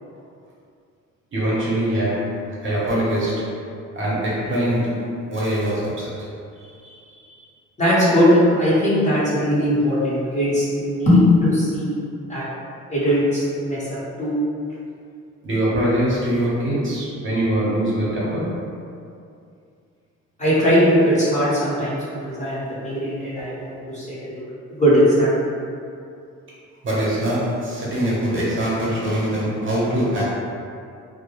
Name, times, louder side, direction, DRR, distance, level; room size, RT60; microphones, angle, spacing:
voice 1, 1.3-3.5 3.9-6.3 6.6-7.4 15.4-18.7 26.8-30.2, right 1 dB, 40° right, -7 dB, 0.8 m, -23 dB
voice 2, 7.8-12.0 12.3-12.4 12.9-14.3 20.4-24.2 24.7-25.3, equal, 25° left, -10 dB, 0.9 m, -19 dB
2.2 x 2.0 x 2.9 m, 2.4 s
cardioid pair, 90°, 30 cm